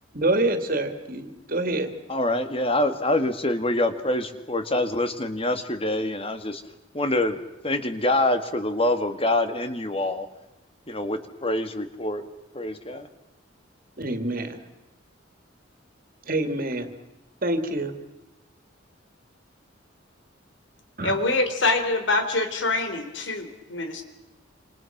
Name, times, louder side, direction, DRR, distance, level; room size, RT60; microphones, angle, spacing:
voice 1, 0.1-1.9 14.0-14.6 16.3-16.9 17.4-17.9 21.0-21.1, right 2 dB, 45° right, 2.7 m, -26 dB
voice 2, 2.1-6.6 6.9-10.3 10.9-12.3 12.5-13.1, left 1 dB, 30° left, 1.9 m, -25 dB
voice 3, 21.0-24.0, left 2 dB, 65° left, 3.6 m, -25 dB
27.5 x 27.5 x 6.1 m
head